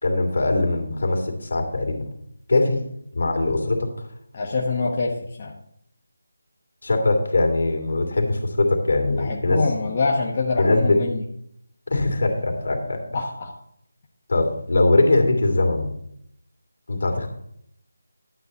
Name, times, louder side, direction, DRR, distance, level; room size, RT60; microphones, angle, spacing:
voice 1, 0.0-2.1 2.5-2.8 3.1-4.1 6.8-9.6 10.6-11.0 11.9-13.0 14.3-15.9 16.9-17.3, left 2 dB, 60° left, 3 dB, 2.5 m, -21 dB
voice 2, 4.3-5.5 9.1-11.2 13.1-13.5, left 3 dB, 35° left, -1 dB, 1.0 m, -25 dB
11.5 x 7.8 x 4.2 m, 0.71 s
figure-of-eight pair, 160°, 0 cm